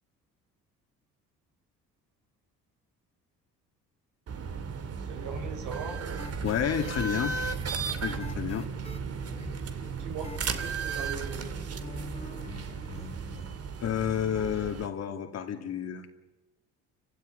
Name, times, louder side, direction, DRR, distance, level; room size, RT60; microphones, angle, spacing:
sound 1, 4.3-14.9, right 5 dB, 55° right, 2.5 m, -35 dB
voice 1, 5.0-6.0 9.1-9.2 9.9-11.6, right 5 dB, 75° right, 4 dB, 5.7 m, -40 dB
sound 2, 5.3-13.6, left 3 dB, 20° left, 2.7 m, -46 dB
voice 2, 6.4-7.4 8.0-8.7 13.8-16.1, left 9 dB, 55° left, 6 dB, 2.7 m, -30 dB
29.5 x 16.0 x 9.5 m, 1.1 s
supercardioid pair, 80°, 30 cm